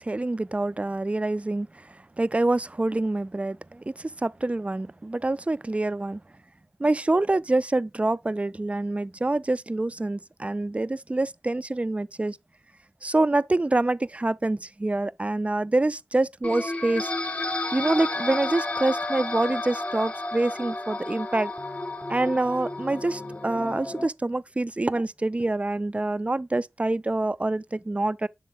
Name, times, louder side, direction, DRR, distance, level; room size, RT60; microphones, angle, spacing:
voice 1, 0.0-1.7 2.2-6.2 6.8-12.4 13.0-17.1 17.7-21.5 22.1-28.3, right 2 dB, 25° right, 0.3 m, -26 dB
sound 1, 16.4-24.1, left 2 dB, 30° left, 0.6 m, -32 dB
6.7 x 3.6 x 3.9 m
cardioid pair, 40°, 5 cm